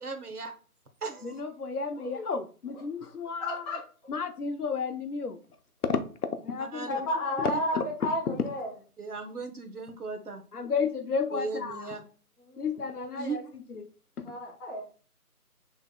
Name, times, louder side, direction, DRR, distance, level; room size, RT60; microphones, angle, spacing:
voice 1, 0.0-0.5 1.0-1.4 6.6-6.9 9.0-10.4 11.3-12.0 13.2-13.4, right 4 dB, 75° right, 1.1 m, -37 dB
voice 2, 1.2-3.8 4.1-5.4 5.8-7.1 7.4-7.8 8.3-8.4 10.5-12.0 12.6-13.4 13.7-13.9 14.2-14.3, left 5 dB, 75° left, 0.7 m, -32 dB
voice 3, 2.0-2.3 3.4-3.8 6.9-8.7 12.5-12.6 12.9-13.1 14.2-14.8, left 1 dB, ahead, 2.1 m, -32 dB
6.7 x 3.5 x 2.2 m
figure-of-eight pair, 160°, 46 cm